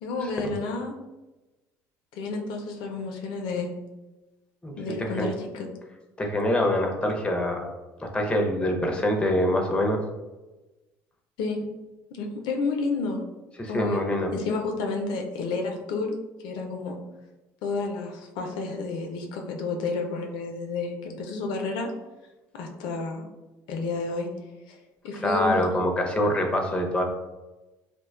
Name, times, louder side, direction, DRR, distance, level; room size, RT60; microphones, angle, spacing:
voice 1, 0.0-0.9 2.1-3.7 4.8-5.7 11.4-11.6 12.1-13.2 13.7-14.0 14.3-16.2 16.4-17.0 17.6-21.9 22.5-23.2 23.7-24.3 24.7-24.8 25.0-25.7, left 3 dB, 70° left, 2 dB, 0.4 m, -30 dB
voice 2, 5.0-5.3 6.2-7.7 8.0-10.0 13.6-14.3 25.2-27.0, left 1 dB, 15° left, 2 dB, 0.5 m, -25 dB
2.5 x 2.1 x 2.3 m, 1.1 s
supercardioid pair, 70°, 8 cm